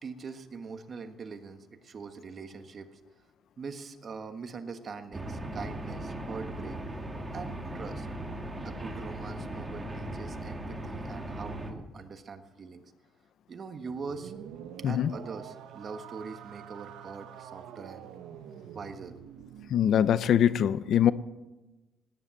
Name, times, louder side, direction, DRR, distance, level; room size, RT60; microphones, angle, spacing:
voice 1, 0.0-2.9 3.6-6.8 7.3-8.1 8.6-12.8 13.5-14.3 14.8-18.1 18.7-19.1, right 5 dB, 40° right, 1.4 m, -42 dB
sound 1, 5.1-11.7, right 1 dB, 15° right, 2.1 m, -38 dB
sound 2, 13.8-19.8, right 9 dB, 90° right, 1.1 m, -46 dB
voice 2, 14.8-15.2 19.7-21.1, left 9 dB, 65° left, 0.6 m, -23 dB
17.5 x 10.0 x 7.6 m
cardioid pair, 110°, 0 cm